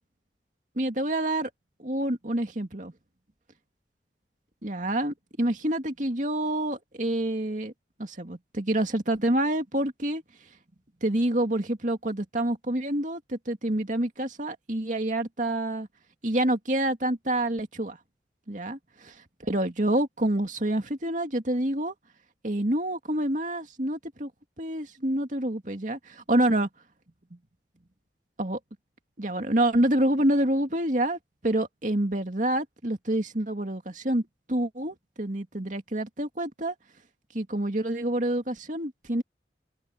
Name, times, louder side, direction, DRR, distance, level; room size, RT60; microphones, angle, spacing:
voice 1, 0.8-1.5 1.8-2.9 4.6-7.7 8.0-10.2 11.0-15.9 16.2-18.0 18.5-18.8 19.1-19.2 19.4-21.9 22.4-24.3 24.6-26.7 28.4-28.6 29.2-34.2 34.5-36.7 37.3-39.2, right 1 dB, 45° right, 2.4 m, -27 dB
open air
head